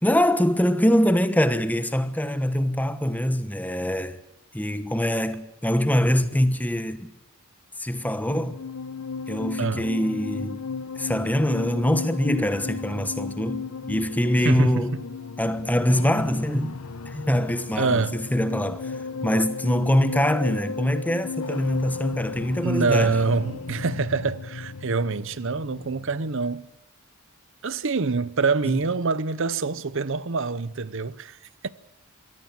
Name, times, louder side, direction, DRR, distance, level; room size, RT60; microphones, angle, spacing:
voice 1, 0.0-4.2 4.5-7.1 7.8-8.6 9.3-10.6 11.0-15.0 15.4-16.8 17.0-23.1 28.6-28.8, equal, 5° left, 1.2 m, -24 dB
sound 1, 8.0-26.5, left 4 dB, 75° left, 0.9 m, -35 dB
voice 2, 14.4-14.9 17.8-18.2 22.6-26.7 27.6-31.4 31.6-31.7, right 4 dB, 60° right, 0.8 m, -25 dB
23.5 x 17.5 x 7.5 m
head